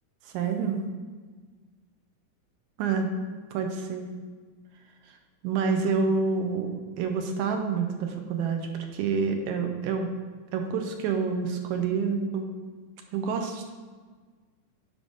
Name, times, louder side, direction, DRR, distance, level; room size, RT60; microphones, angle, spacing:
voice 1, 0.3-0.8 2.8-3.1 3.5-4.1 5.1-5.2 5.4-10.1 10.5-12.5 13.1-13.7, right 5 dB, 75° right, 4 dB, 2.0 m, -28 dB
9.5 x 5.4 x 3.8 m, 1.5 s
omnidirectional pair, 3.7 m